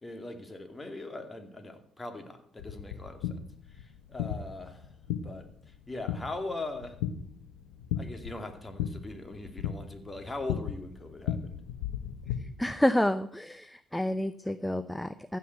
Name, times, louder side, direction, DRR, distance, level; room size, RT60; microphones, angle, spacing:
voice 1, 0.0-3.4 3.7-4.9 5.2-7.0 8.0-11.6, left 2 dB, 25° left, 7 dB, 2.5 m, -41 dB
sound 1, 2.6-12.4, left 9 dB, 90° left, 1.1 m, -37 dB
voice 2, 12.6-15.4, left 1 dB, 5° left, 12 dB, 0.7 m, -29 dB
15.5 x 5.6 x 8.1 m, 0.66 s
supercardioid pair, 60°, 0 cm